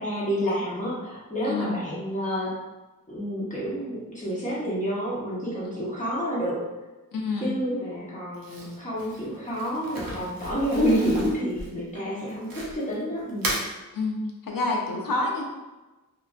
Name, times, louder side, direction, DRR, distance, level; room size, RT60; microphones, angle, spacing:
voice 1, 0.0-2.5 3.1-6.6 7.4-13.4, equal, 20° left, -8 dB, 0.9 m, -29 dB
voice 2, 1.4-1.8 5.6-5.8 7.1-7.5 12.0-12.3 13.9-15.4, left 3 dB, 75° left, 0 dB, 0.6 m, -28 dB
Crumpling crinkling, 8.3-12.9 13.3-13.7, right 1 dB, 90° right, 0.6 m, -35 dB
2.8 x 2.5 x 2.4 m, 1.1 s
wide cardioid pair, 55°, 34 cm